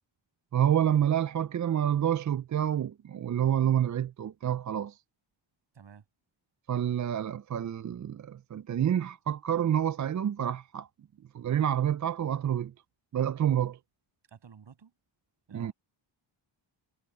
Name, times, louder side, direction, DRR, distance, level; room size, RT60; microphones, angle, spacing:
voice 1, 0.5-5.0 6.7-10.9 11.3-12.7 13.1-13.8 15.5-15.7, right 10 dB, 40° right, 0.4 m, -28 dB
voice 2, 14.3-14.9 15.5-15.7, right 6 dB, 60° right, 6.8 m, -51 dB
wide cardioid pair, 135°, 48 cm